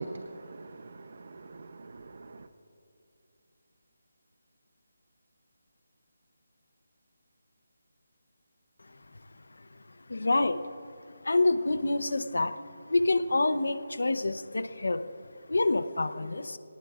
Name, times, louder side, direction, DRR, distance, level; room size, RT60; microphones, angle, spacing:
voice 1, 0.0-2.5, right 3 dB, 50° right, 0.7 m, -43 dB
voice 2, 10.1-10.8 11.2-12.6 12.9-15.0 15.5-16.6, left 2 dB, 80° left, 0.9 m, -27 dB
25.0 x 18.5 x 2.5 m
figure-of-eight pair, 170°, 0 cm